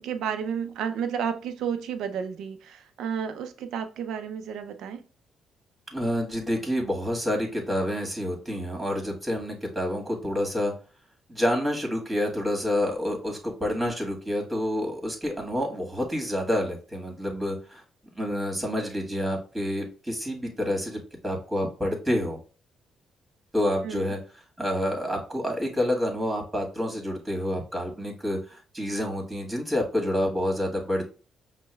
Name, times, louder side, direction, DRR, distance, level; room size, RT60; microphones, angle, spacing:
voice 1, 0.0-5.0 23.8-24.1, right 7 dB, 80° right, 0.5 m, -32 dB
voice 2, 5.9-10.7 11.3-17.8 18.1-22.4 23.5-24.2 24.6-31.0, left 1 dB, 15° right, 1.7 m, -28 dB
5.4 x 2.2 x 3.2 m
cardioid pair, 90°, 0 cm